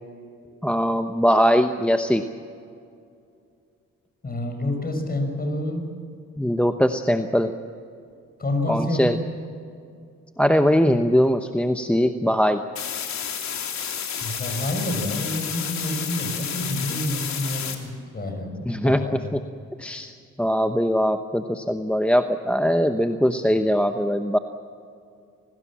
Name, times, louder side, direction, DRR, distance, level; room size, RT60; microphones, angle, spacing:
voice 1, 0.6-2.2 6.4-7.5 8.7-9.2 10.4-12.6 18.6-19.4 19.8-20.1 20.4-24.4, equal, 5° left, 7 dB, 0.9 m, -21 dB
voice 2, 4.2-5.9 8.4-9.3 14.2-19.2, left 1 dB, 30° left, 5 dB, 6.2 m, -28 dB
sound 1, 12.8-17.8, left 8 dB, 65° left, 3.3 m, -31 dB
26.5 x 18.5 x 7.5 m, 2.4 s
cardioid pair, 90°, 30 cm